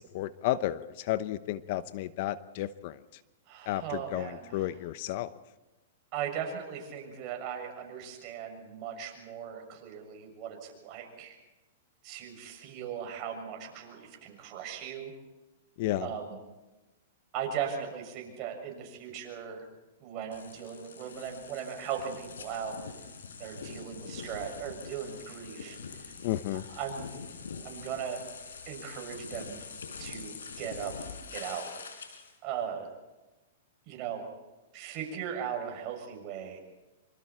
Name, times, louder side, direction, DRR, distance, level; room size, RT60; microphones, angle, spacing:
voice 1, 0.0-3.0 3.7-5.3 15.8-16.1 26.2-26.7, left 14 dB, 55° left, 15 dB, 0.9 m, -32 dB
voice 2, 3.5-4.7 6.1-11.4 12.0-15.1 16.0-16.4 17.3-19.6 20.0-22.8 23.4-25.8 26.7-27.0 27.6-28.2 28.7-29.6 30.0-30.9 31.3-31.7 32.4-32.9 33.9-34.3 34.7-36.6, right 8 dB, 40° right, 2 dB, 6.7 m, -38 dB
sound 1, 20.3-32.3, left 5 dB, 90° left, 4.4 m, -44 dB
25.5 x 25.5 x 4.4 m, 1.1 s
hypercardioid pair, 130°, 0 cm